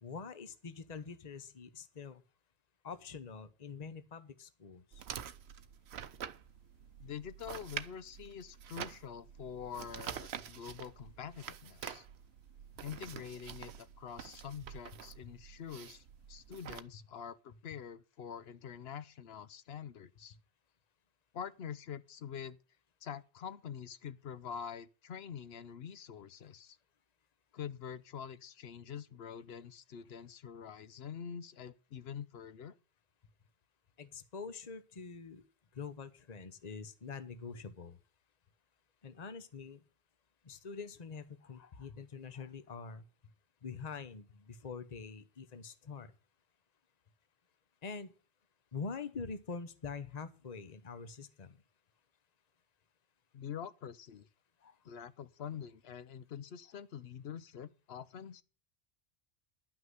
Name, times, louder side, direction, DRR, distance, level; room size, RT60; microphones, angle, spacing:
voice 1, 0.0-2.2 2.8-5.0 34.0-35.4 35.7-38.0 39.0-39.8 40.4-43.0 43.6-46.1 47.8-48.1 48.7-51.6 54.6-54.8, left 5 dB, 35° left, 1.1 m, -45 dB
sound 1, 4.9-16.8, right 9 dB, 65° right, 1.0 m, -47 dB
voice 2, 7.0-12.1 12.8-20.4 21.3-22.6 23.0-26.8 27.5-32.7 53.3-54.3 54.8-58.4, left 8 dB, 65° left, 0.9 m, -45 dB
11.0 x 6.0 x 7.9 m
omnidirectional pair, 1.2 m